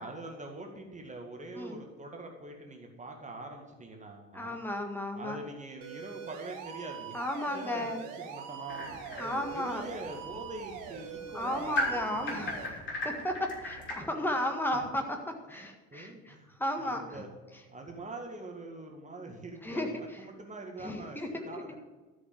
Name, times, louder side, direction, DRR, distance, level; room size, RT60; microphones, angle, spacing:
voice 1, 0.0-4.6 5.1-7.2 7.5-12.7 14.3-14.4 14.7-14.8 15.5-16.5 16.8-17.3 17.7-21.8, right 2 dB, 20° right, 2 dB, 2.0 m, -44 dB
voice 2, 4.3-5.4 7.1-8.0 9.2-9.8 11.3-17.2 19.6-19.9 20.8-21.6, left 1 dB, 5° left, 3 dB, 1.6 m, -34 dB
sound 1, 5.8-12.7, right 8 dB, 50° right, 1.5 m, -43 dB
sound 2, 8.7-13.9, left 2 dB, 30° left, 3.5 m, -38 dB
12.5 x 5.7 x 7.3 m, 1.2 s
figure-of-eight pair, 70°, 40 cm